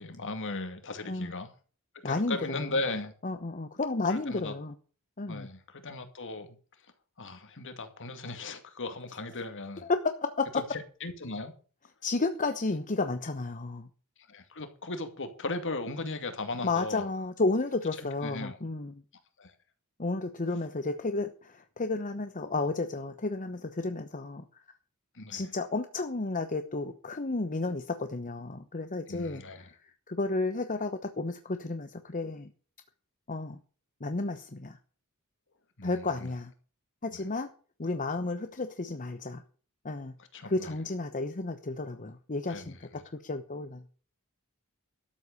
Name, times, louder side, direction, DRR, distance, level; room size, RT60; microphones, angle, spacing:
voice 1, 0.0-1.5 2.0-3.1 4.1-4.5 5.3-6.6 7.2-9.9 10.7-11.5 14.3-17.0 18.2-18.6 19.4-19.5 25.1-25.4 29.1-29.7 35.8-36.3 40.3-40.7 42.5-43.0, left 2 dB, 60° left, 2.3 m, -37 dB
voice 2, 2.0-2.7 3.2-4.7 5.2-5.5 9.8-10.5 12.0-13.9 16.6-18.9 20.0-24.4 25.3-32.5 33.3-33.6 34.0-34.8 35.8-36.5 37.0-37.5 37.8-39.4 39.8-40.1 40.4-43.8, left 3 dB, 35° left, 1.0 m, -32 dB
13.0 x 8.1 x 6.6 m
head